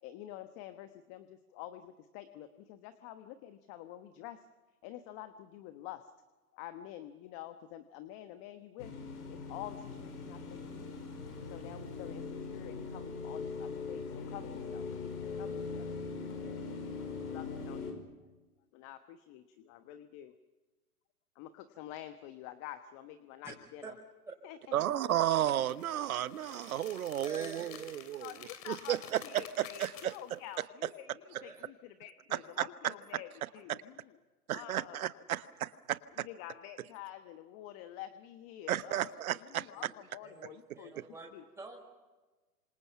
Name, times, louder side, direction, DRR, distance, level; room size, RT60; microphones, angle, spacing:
voice 1, 0.0-4.5 4.8-6.1 6.5-8.9 9.3-11.0 11.5-15.9 16.2-16.3 16.7-16.9 17.2-18.0 18.7-20.3 21.3-23.9 24.4-24.7 28.2-29.0 29.2-33.3 33.5-34.1 34.5-35.2 36.2-40.9 41.3-41.4, left 13 dB, 30° left, 10 dB, 1.2 m, -48 dB
sound 1, 8.8-17.9, left 4 dB, 75° left, 5.7 m, -41 dB
voice 2, 24.7-28.3 28.7-29.0 29.6-30.4 32.3-32.4 32.8-32.9 33.7-33.8 34.5-36.3 38.7-39.7, right 12 dB, 65° right, 15 dB, 1.1 m, -33 dB
sound 2, 25.1-30.6, left 9 dB, 55° left, 3.4 m, -51 dB
voice 3, 27.2-28.0 31.3-31.6 38.9-39.0 39.7-39.9 40.2-41.3 41.6-41.8, right 3 dB, 5° right, -2 dB, 5.6 m, -47 dB
27.0 x 26.5 x 5.7 m, 1.2 s
hypercardioid pair, 125°, 46 cm